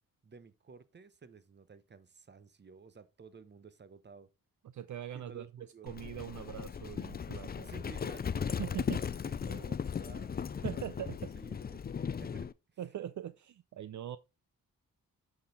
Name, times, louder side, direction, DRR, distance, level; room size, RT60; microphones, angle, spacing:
voice 1, 0.2-4.3 5.1-5.9 7.6-11.0 11.4-11.8 12.2-12.8, right 5 dB, 30° right, 0.8 m, -54 dB
voice 2, 4.6-7.7 8.6-9.0 10.6-11.2 12.8-14.2, right 11 dB, 55° right, 0.5 m, -42 dB
Livestock farm animals working animals, 5.9-12.5, left 7 dB, 30° left, 0.4 m, -37 dB
7.4 x 4.4 x 3.9 m
cardioid pair, 80°, 36 cm